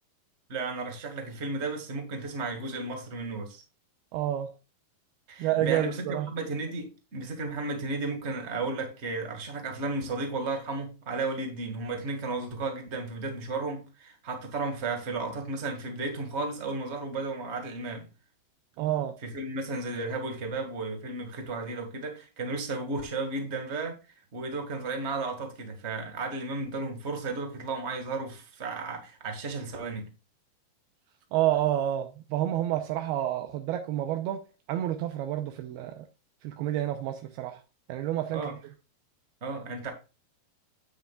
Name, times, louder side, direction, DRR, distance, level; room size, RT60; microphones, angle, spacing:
voice 1, 0.5-3.6 5.3-18.1 19.2-24.0 24.3-30.1 38.3-38.6 39.4-39.9, right 3 dB, 25° right, 1.5 m, -34 dB
voice 2, 4.1-4.5 5.4-6.3 18.8-19.2 31.3-36.1 36.4-37.6 37.9-38.5, right 12 dB, 80° right, 2.7 m, -29 dB
9.8 x 9.2 x 2.4 m
omnidirectional pair, 4.6 m